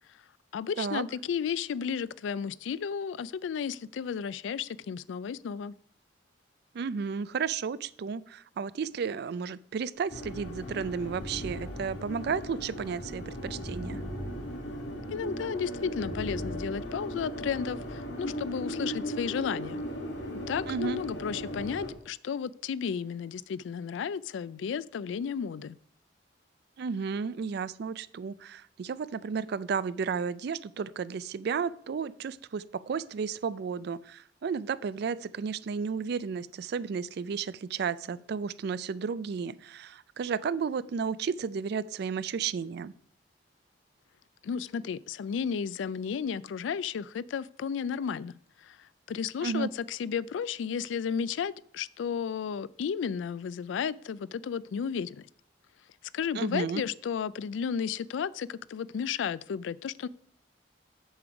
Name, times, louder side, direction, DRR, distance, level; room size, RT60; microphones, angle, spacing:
voice 1, 0.5-5.8 15.1-19.8 20.5-25.8 44.4-48.3 48.6-55.3 56.1-60.1, left 7 dB, 85° left, 0.3 m, -33 dB
voice 2, 6.7-14.0 20.6-21.0 26.8-42.9 49.4-49.7 56.3-56.8, right 6 dB, 60° right, 0.3 m, -33 dB
sound 1, 10.1-21.9, equal, 70° left, 1.7 m, -38 dB
sound 2, 10.9-16.7, equal, 10° left, 3.3 m, -43 dB
7.1 x 6.8 x 4.9 m
head